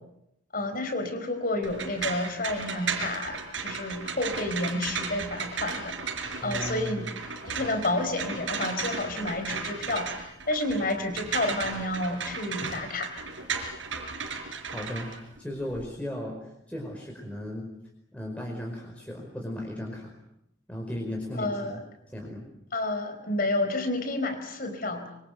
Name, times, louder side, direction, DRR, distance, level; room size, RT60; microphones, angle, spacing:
voice 1, 0.5-6.0 6.4-7.1 7.4-13.2 21.3-21.8 22.7-25.1, left 2 dB, 45° left, 8 dB, 4.5 m, -30 dB
sound 1, 1.6-15.8, right 5 dB, 80° right, 4.6 m, -35 dB
voice 2, 6.4-7.1 14.6-15.1 15.4-17.7 18.1-20.1 20.7-21.8 22.1-22.5, left 1 dB, 5° left, -1 dB, 5.0 m, -36 dB
25.5 x 25.0 x 7.9 m, 0.83 s
head